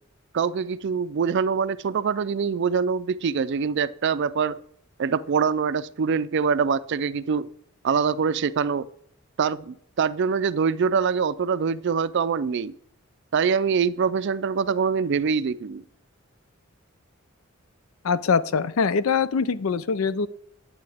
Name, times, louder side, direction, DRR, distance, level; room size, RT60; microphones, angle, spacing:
voice 1, 0.3-4.6 5.0-7.5 7.8-8.9 9.4-12.7 13.3-15.8, right 6 dB, 55° right, 15 dB, 0.4 m, -24 dB
voice 2, 18.0-20.3, left 5 dB, 85° left, 16 dB, 0.5 m, -23 dB
9.7 x 8.6 x 3.5 m, 0.66 s
head